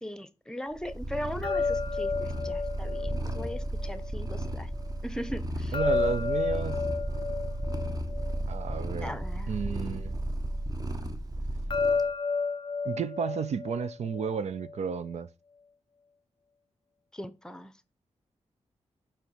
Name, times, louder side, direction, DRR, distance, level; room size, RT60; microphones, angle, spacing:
voice 1, 0.0-4.7 5.0-5.8 9.0-9.5 17.1-17.7, equal, 5° left, 0.7 m, -39 dB
Purr, 0.7-12.0, right 1 dB, 30° right, 1.0 m, -34 dB
sound 1, 1.4-4.5 5.7-9.2 11.7-14.8, left 4 dB, 45° left, 0.4 m, -32 dB
voice 2, 5.7-6.9 8.5-9.2 9.5-10.2 12.8-15.3, right 6 dB, 75° right, 0.5 m, -32 dB
5.7 x 4.5 x 5.6 m
wide cardioid pair, 90°, 12 cm